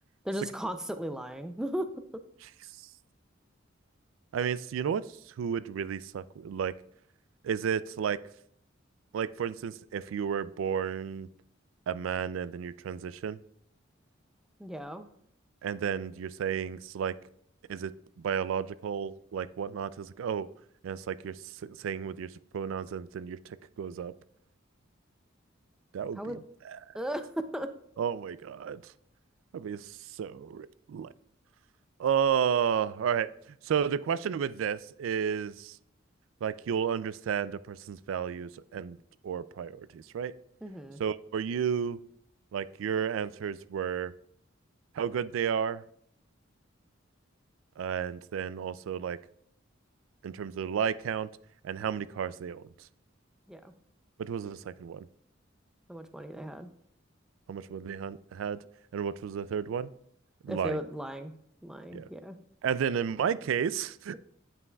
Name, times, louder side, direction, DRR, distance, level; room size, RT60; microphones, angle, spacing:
voice 1, 0.2-1.9 14.6-15.1 26.2-26.4 26.9-27.7 40.6-41.0 53.5-53.7 55.9-56.7 60.5-61.3 61.6-62.4, equal, 5° right, 8 dB, 0.4 m, -36 dB
voice 2, 4.3-5.0 5.4-6.7 7.4-8.2 9.1-11.3 11.9-13.4 15.6-17.2 17.7-17.9 18.2-20.5 20.8-24.1 25.9-26.4 26.7-26.8 28.0-28.8 29.5-31.1 32.0-33.3 33.6-35.8 36.4-39.0 39.2-40.3 41.0-42.0 42.5-44.1 44.9-45.8 47.8-49.2 50.2-51.3 51.6-52.6 54.2-55.1 57.5-58.6 58.9-59.9 60.4-60.8 61.9-62.1 62.6-64.2, right 7 dB, 75° right, 17 dB, 0.3 m, -32 dB
9.4 x 5.5 x 2.3 m, 0.68 s
head